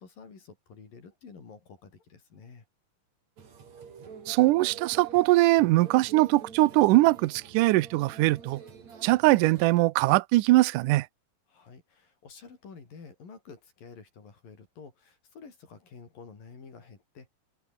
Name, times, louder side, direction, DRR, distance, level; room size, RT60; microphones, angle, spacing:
voice 1, 0.0-2.7 11.5-17.3, left 5 dB, 75° left, 6.9 m, -50 dB
sound 1, 3.4-9.7, right 6 dB, 50° right, 4.4 m, -47 dB
voice 2, 4.3-8.6 9.0-11.1, right 19 dB, 75° right, 2.2 m, -21 dB
omnidirectional pair, 4.0 m